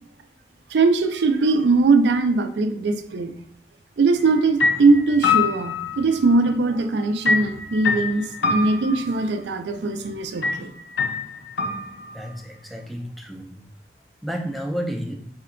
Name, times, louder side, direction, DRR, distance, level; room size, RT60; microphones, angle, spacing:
voice 1, 0.7-3.3 4.0-10.7, right 3 dB, 75° right, 9 dB, 0.4 m, -20 dB
sound 1, 4.2-4.3 4.6-6.5 7.2-9.3 10.4-10.6 11.0-12.3, left 5 dB, 90° left, 0.6 m, -24 dB
voice 2, 12.1-13.6 14.2-15.1, equal, ahead, 3 dB, 0.3 m, -31 dB
4.3 x 2.2 x 3.7 m, 0.67 s
head